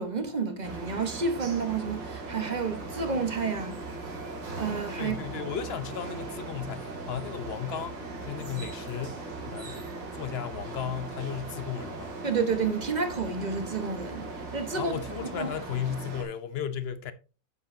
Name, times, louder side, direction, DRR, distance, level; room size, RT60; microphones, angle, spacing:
voice 1, 0.0-3.8 4.5-5.4 12.2-15.0 15.4-15.5, right 5 dB, 30° right, 1.1 m, -30 dB
sound 1, 0.6-16.2, right 3 dB, 85° right, 3.0 m, -39 dB
voice 2, 5.0-9.8 10.1-12.2 14.7-17.1, left 8 dB, 60° left, 0.6 m, -35 dB
9.5 x 7.9 x 2.7 m
omnidirectional pair, 1.9 m